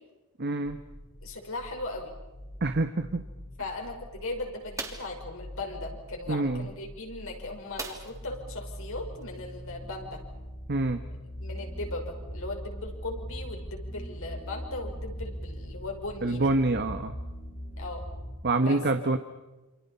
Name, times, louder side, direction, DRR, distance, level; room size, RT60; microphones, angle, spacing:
voice 1, 0.4-0.8 2.6-3.2 6.3-6.7 10.7-11.0 16.2-17.1 18.4-19.2, right 2 dB, 50° right, 7 dB, 1.3 m, -26 dB
sound 1, 0.6-18.4, equal, 35° left, 4.8 m, -41 dB
voice 2, 1.2-2.1 3.6-10.2 11.4-16.4 17.8-18.0 18.5-18.8, left 2 dB, 65° left, 1 dB, 5.8 m, -38 dB
sound 2, 4.8-5.2 7.8-8.3 8.7-8.8 9.2-9.4, right 3 dB, 15° right, 2.8 m, -38 dB
28.5 x 27.0 x 5.8 m, 1.1 s
head